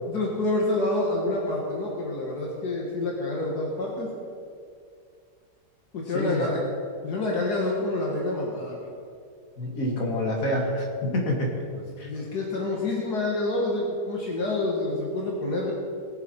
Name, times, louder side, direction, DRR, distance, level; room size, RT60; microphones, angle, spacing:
voice 1, 0.1-4.1 5.9-6.6 7.0-8.9 12.0-15.7, left 2 dB, 75° left, -2 dB, 2.1 m, -27 dB
voice 2, 6.1-6.5 9.6-11.6 12.0-12.1, left 1 dB, 55° left, -1 dB, 2.4 m, -27 dB
20.5 x 7.4 x 4.5 m, 2.3 s
omnidirectional pair, 1.7 m